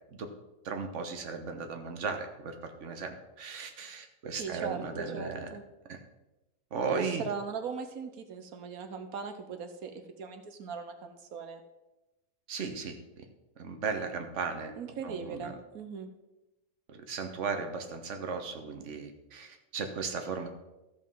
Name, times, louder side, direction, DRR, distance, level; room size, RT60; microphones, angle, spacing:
voice 1, 0.6-5.5 5.9-6.0 6.7-7.2 12.5-13.0 13.6-14.7 15.0-15.5 16.9-20.5, right 5 dB, 55° right, 6 dB, 1.4 m, -36 dB
voice 2, 4.4-5.6 6.9-11.6 14.8-16.1, right 5 dB, 75° right, 7 dB, 1.3 m, -39 dB
13.5 x 5.3 x 5.5 m, 1.0 s
omnidirectional pair, 1.6 m